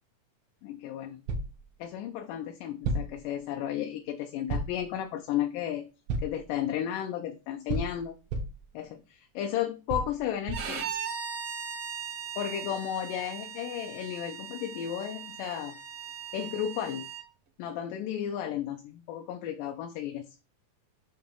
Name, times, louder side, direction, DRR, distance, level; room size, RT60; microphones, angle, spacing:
voice 1, 0.6-1.2 1.8-5.9 6.2-8.2 8.7-10.9 12.4-15.8 16.3-17.1 17.6-20.4, left 10 dB, 80° left, 4 dB, 2.1 m, -34 dB
sound 1, 1.3-1.6 2.8-3.2 4.5-4.9 6.1-6.5 7.7-8.7 9.9-10.8, right 2 dB, 85° right, 2.7 m, -32 dB
Bowed string instrument, 10.5-17.2, right 7 dB, 65° right, 1.5 m, -39 dB
8.6 x 2.9 x 3.7 m, 0.32 s
omnidirectional pair, 4.0 m